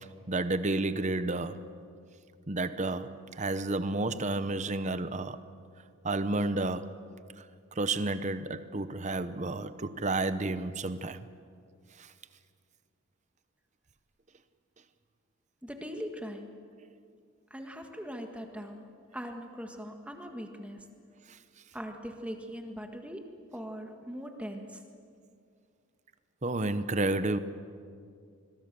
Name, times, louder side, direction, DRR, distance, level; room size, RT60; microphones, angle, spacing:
voice 1, 0.3-1.6 2.5-5.4 6.0-6.9 7.8-11.2 26.4-27.4, right 2 dB, 35° right, 0.8 m, -31 dB
voice 2, 15.6-16.5 17.5-18.9 19.1-20.8 21.7-23.2 23.5-24.8, equal, 5° right, 1.7 m, -40 dB
26.0 x 22.0 x 6.9 m
head